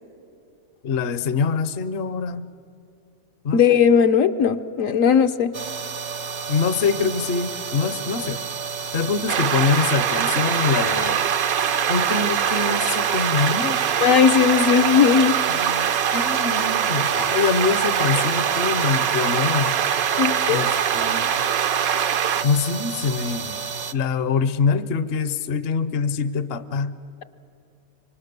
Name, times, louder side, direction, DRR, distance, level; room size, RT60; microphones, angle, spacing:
voice 1, 0.8-2.5 3.4-3.6 6.5-8.4 8.9-11.2 11.9-13.9 15.2-15.9 16.1-19.7 20.5-21.3 22.4-23.6 23.9-26.9, left 5 dB, 50° left, 13 dB, 0.8 m, -24 dB
voice 2, 3.5-5.5 14.0-15.4 20.2-20.7, left 7 dB, 70° left, 8 dB, 1.1 m, -17 dB
sound 1, 5.5-23.9, right 6 dB, 45° right, 0.6 m, -31 dB
sound 2, 9.3-22.4, right 9 dB, 75° right, 1.2 m, -23 dB
26.0 x 23.5 x 6.7 m, 2.6 s
omnidirectional pair, 1.5 m